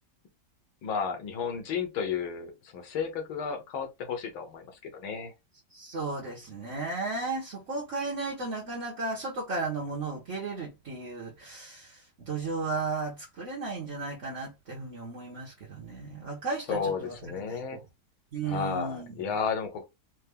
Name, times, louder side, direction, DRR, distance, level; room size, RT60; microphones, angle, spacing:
voice 1, 0.8-5.3 16.7-17.8 18.5-19.8, left 6 dB, 80° left, 1.9 m, -33 dB
voice 2, 5.7-17.6 18.3-19.1, right 3 dB, 45° right, 1.3 m, -35 dB
4.5 x 2.7 x 3.5 m
omnidirectional pair, 2.2 m